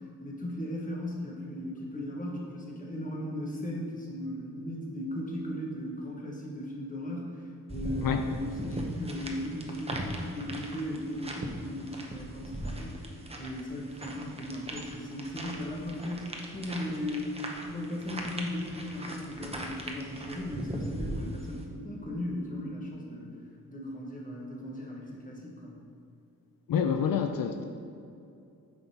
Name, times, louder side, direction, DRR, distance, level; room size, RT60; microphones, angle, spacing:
voice 1, 0.2-17.4 17.7-23.4 23.7-25.8, left 1 dB, 25° left, -3 dB, 1.3 m, -37 dB
sound 1, 7.7-21.6, right 1 dB, 20° right, 0.7 m, -39 dB
voice 2, 26.7-27.6, left 7 dB, 80° left, 6 dB, 0.5 m, -27 dB
9.1 x 5.8 x 2.8 m, 2.5 s
wide cardioid pair, 125°, 34 cm